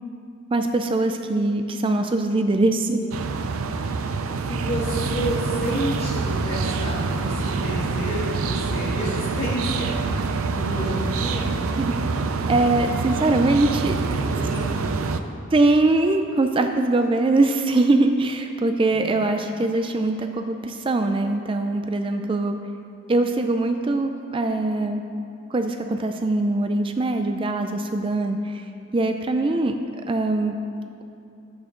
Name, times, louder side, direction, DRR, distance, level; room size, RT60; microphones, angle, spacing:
voice 1, 0.5-3.0 11.8-11.9 12.5-13.9 15.5-22.6 23.1-25.0 25.5-28.7 28.9-29.8 30.1-30.5, right 2 dB, 25° right, 6 dB, 0.4 m, -22 dB
sound 1, 3.1-15.2, right 4 dB, 90° right, 0.5 m, -26 dB
voice 2, 4.5-10.0 10.5-11.6 14.3-14.7 19.0-19.2, equal, 45° left, -10 dB, 1.9 m, -30 dB
11.0 x 8.6 x 3.8 m, 2.6 s
head